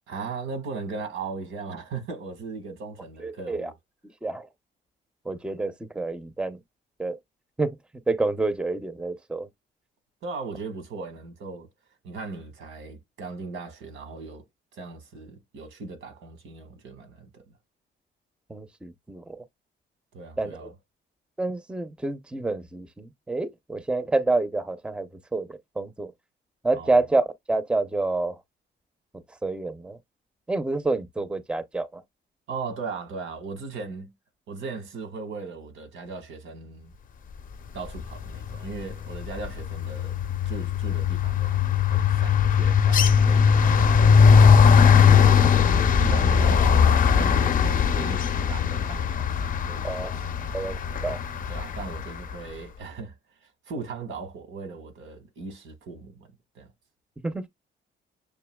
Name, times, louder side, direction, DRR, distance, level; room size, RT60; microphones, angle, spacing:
voice 1, 0.1-3.7 10.2-11.7 12.0-14.4 14.7-17.4 20.1-20.7 26.7-27.0 32.5-34.1 34.5-36.9 37.7-40.2 40.4-41.6 41.9-45.6 46.0-50.1 50.4-50.5 51.5-53.1 53.4-56.3 56.5-56.7, right 4 dB, 75° right, 1.6 m, -38 dB
voice 2, 3.2-3.7 4.2-4.5 5.2-6.6 7.0-7.2 7.6-7.8 8.1-9.5 18.5-19.4 20.4-20.7 21.4-26.1 26.6-28.4 29.4-30.0 30.5-32.0 49.8-50.1 50.5-50.8 51.0-51.2 57.2-57.5, right 2 dB, 5° right, 0.5 m, -28 dB
sound 1, 38.3-38.6 38.9-52.0, left 6 dB, 45° left, 0.5 m, -19 dB
7.0 x 2.7 x 2.2 m
cardioid pair, 90°, 20 cm